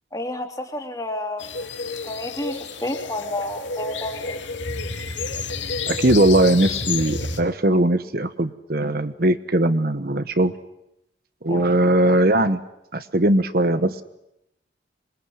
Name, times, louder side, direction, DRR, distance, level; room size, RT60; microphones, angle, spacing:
voice 1, 0.1-1.5 2.0-4.5 11.5-11.8, left 1 dB, 20° left, 4 dB, 3.1 m, -30 dB
sound 1, 1.4-7.4, left 4 dB, 85° left, 2.8 m, -30 dB
voice 2, 5.9-10.5 11.4-12.6 12.9-14.0, right 1 dB, 55° right, 11 dB, 1.1 m, -19 dB
26.5 x 22.0 x 9.7 m, 0.85 s
head